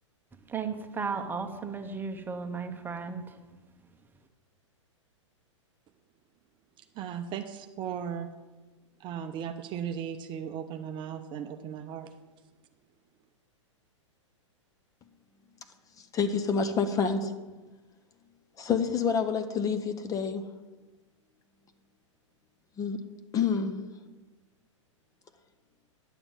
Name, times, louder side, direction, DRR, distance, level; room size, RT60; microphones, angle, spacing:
voice 1, 0.5-3.3, right 5 dB, 10° right, 6 dB, 1.0 m, -35 dB
voice 2, 6.9-8.3 9.0-12.1, right 8 dB, 30° right, 7 dB, 0.6 m, -36 dB
voice 3, 16.0-17.3 18.6-20.4 22.8-23.0 23.3-23.8, left 6 dB, 20° left, 9 dB, 0.7 m, -28 dB
11.0 x 7.0 x 5.5 m, 1.2 s
hypercardioid pair, 115°, 16 cm